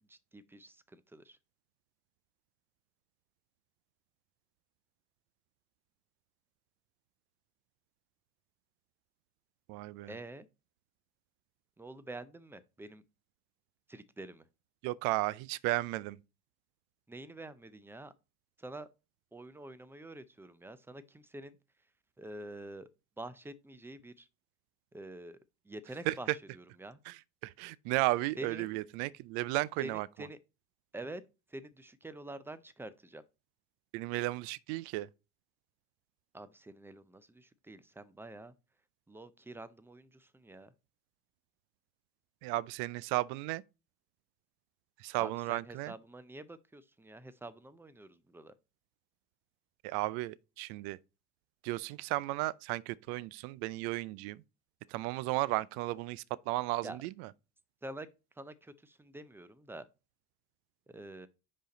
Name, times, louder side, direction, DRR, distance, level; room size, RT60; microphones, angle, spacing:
voice 1, 0.1-1.4 10.1-10.5 11.8-13.0 13.9-14.5 17.1-18.1 18.6-18.9 19.3-21.6 22.2-22.9 23.2-24.3 24.9-25.4 25.6-27.0 28.4-28.7 29.8-30.4 30.9-31.2 31.5-33.2 36.3-38.5 39.1-40.7 45.2-48.5 56.8-57.0 57.8-58.1 58.4-59.9 60.9-61.3, right 2 dB, 5° right, 0.4 m, -47 dB
voice 2, 9.7-10.1 14.8-16.2 26.1-26.2 27.1-27.2 27.4-30.1 33.9-35.1 42.4-43.6 45.0-45.9 49.8-51.0 51.6-54.4 54.9-57.3, right 19 dB, 60° right, 0.5 m, -34 dB
5.4 x 5.1 x 3.8 m
hypercardioid pair, 85°, 45 cm